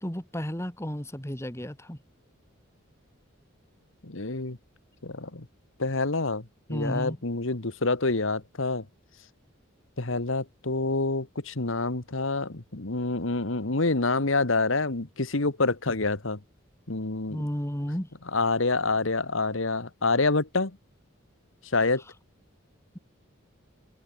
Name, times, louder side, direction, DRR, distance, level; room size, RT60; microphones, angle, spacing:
voice 1, 0.0-2.0 6.7-7.2 17.3-18.1, equal, 15° left, 2.5 m, -32 dB
voice 2, 4.0-4.6 5.0-5.5 5.8-8.8 10.0-16.4 16.9-17.4 18.3-20.8 21.7-22.0, left 3 dB, 70° left, 1.7 m, -27 dB
head